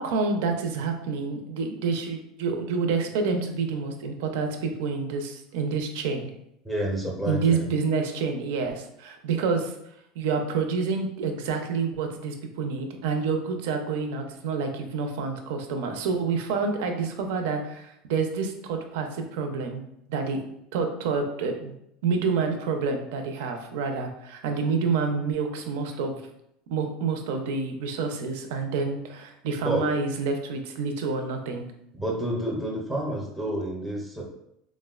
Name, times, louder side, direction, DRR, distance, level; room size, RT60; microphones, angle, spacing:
voice 1, 0.0-6.3 7.2-9.7 10.2-19.8 20.1-21.7 22.0-26.2 26.7-31.6, right 4 dB, 75° right, 5 dB, 0.4 m, -28 dB
voice 2, 6.6-7.7 29.6-29.9 31.9-34.2, right 1 dB, 5° right, -2 dB, 0.5 m, -29 dB
3.4 x 2.1 x 2.3 m, 0.78 s
supercardioid pair, 160°, 0 cm